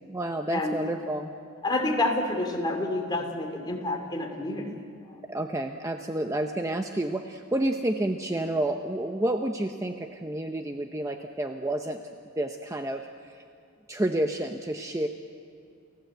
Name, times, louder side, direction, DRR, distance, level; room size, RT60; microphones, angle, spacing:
voice 1, 0.0-1.3 5.3-12.0 12.4-13.4 13.9-15.1, right 1 dB, 15° right, 5 dB, 0.7 m, -30 dB
voice 2, 1.6-4.7 5.1-5.2, left 2 dB, 20° left, 2 dB, 2.8 m, -28 dB
30.0 x 15.5 x 8.0 m, 2.5 s
head